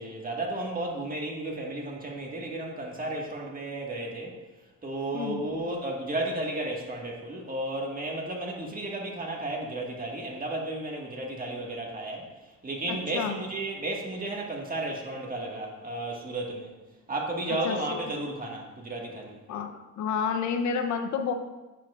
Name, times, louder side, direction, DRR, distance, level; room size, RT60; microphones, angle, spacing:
voice 1, 0.0-4.4 4.8-16.7 17.1-19.4, right 2 dB, 30° right, -1 dB, 1.6 m, -33 dB
voice 2, 12.9-13.4 17.6-18.0 19.5-21.3, left 6 dB, 70° left, 6 dB, 0.7 m, -30 dB
9.1 x 7.0 x 2.4 m, 1.1 s
cardioid pair, 90°, 30 cm